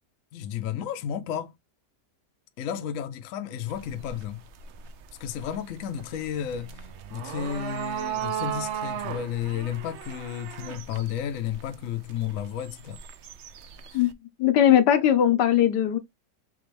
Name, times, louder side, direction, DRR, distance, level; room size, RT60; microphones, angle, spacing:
voice 1, 0.3-1.5 2.6-4.4 5.2-6.9 7.1-13.0 13.9-14.0, left 9 dB, 65° left, 0.9 m, -32 dB
sound 1, 3.7-14.1, right 9 dB, 75° right, 0.6 m, -37 dB
voice 2, 14.4-16.0, left 10 dB, 80° left, 1.3 m, -19 dB
5.9 x 2.5 x 3.2 m
omnidirectional pair, 1.8 m